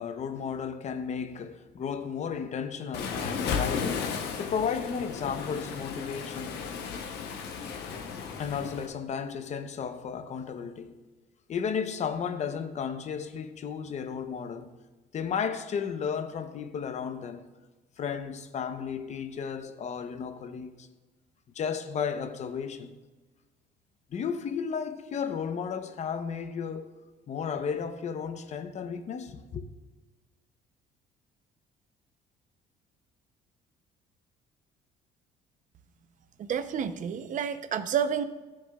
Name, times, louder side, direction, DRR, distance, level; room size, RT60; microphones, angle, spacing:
voice 1, 0.0-6.6 8.4-10.9 11.5-14.7 15.1-17.5 18.0-20.9 21.5-22.9 24.1-26.9 27.3-29.7, left 6 dB, 45° left, 0.7 m, -34 dB
Waves surf, 2.9-8.9, left 6 dB, 90° left, 1.0 m, -34 dB
voice 2, 36.4-38.2, right 8 dB, 50° right, 0.7 m, -29 dB
14.0 x 6.6 x 2.3 m
cardioid pair, 110°, 17 cm